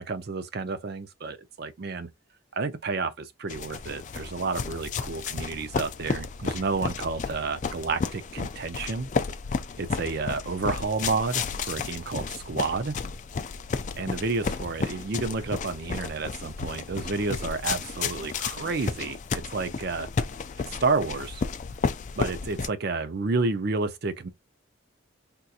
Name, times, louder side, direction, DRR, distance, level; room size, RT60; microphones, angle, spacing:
voice 1, 0.0-2.1 2.5-9.1 9.8-13.0 13.9-20.1 20.6-21.5 22.2-24.3, right 4 dB, 50° right, 0.5 m, -30 dB
sound 1, 3.5-22.7, left 5 dB, 35° left, 0.3 m, -32 dB
3.6 x 2.8 x 2.4 m
head